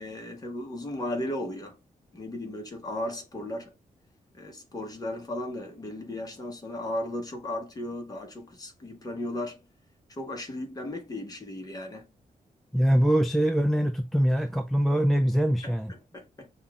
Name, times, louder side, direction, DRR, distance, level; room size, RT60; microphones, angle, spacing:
voice 1, 0.0-1.8 2.1-3.7 4.3-9.6 10.1-12.1 15.6-16.5, left 1 dB, 25° left, 1.1 m, -36 dB
voice 2, 12.7-15.9, equal, ahead, 0.3 m, -23 dB
5.6 x 2.4 x 3.4 m
wide cardioid pair, 150°, 15 cm